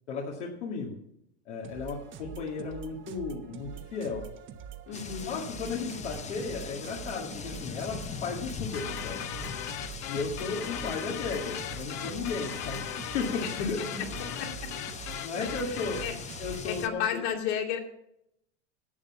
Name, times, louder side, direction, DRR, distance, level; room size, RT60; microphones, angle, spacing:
voice 1, 0.1-1.0 1.5-4.2 5.3-9.2 10.1-14.0 15.2-16.0 16.4-17.2, left 4 dB, 90° left, -3 dB, 2.3 m, -35 dB
sound 1, 1.6-16.8, right 9 dB, 35° right, 1.0 m, -45 dB
voice 2, 4.9-5.4 13.4-14.7 15.7-16.2 16.6-17.8, left 8 dB, 70° left, 2 dB, 2.7 m, -33 dB
sound 2, 4.9-16.9, left 6 dB, 20° left, 0.8 m, -41 dB
sound 3, 8.7-16.2, left 11 dB, 55° left, 1.0 m, -38 dB
11.0 x 7.6 x 7.3 m, 0.78 s
supercardioid pair, 110°, 34 cm